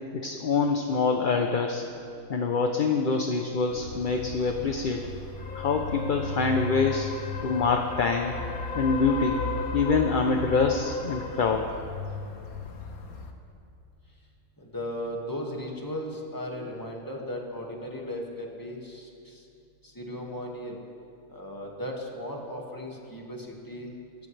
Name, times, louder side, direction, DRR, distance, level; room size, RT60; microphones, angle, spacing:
voice 1, 0.1-1.8 2.3-5.1 5.5-7.1 7.4-8.3 8.7-9.4 9.7-11.7, left 4 dB, 45° left, 3 dB, 0.7 m, -25 dB
sound 1, 3.7-13.3, left 4 dB, 75° left, 1.6 m, -35 dB
voice 2, 14.6-19.4 19.8-20.8 21.3-23.9, equal, 15° left, -1 dB, 1.9 m, -36 dB
24.5 x 13.5 x 3.3 m, 2.6 s
omnidirectional pair, 1.5 m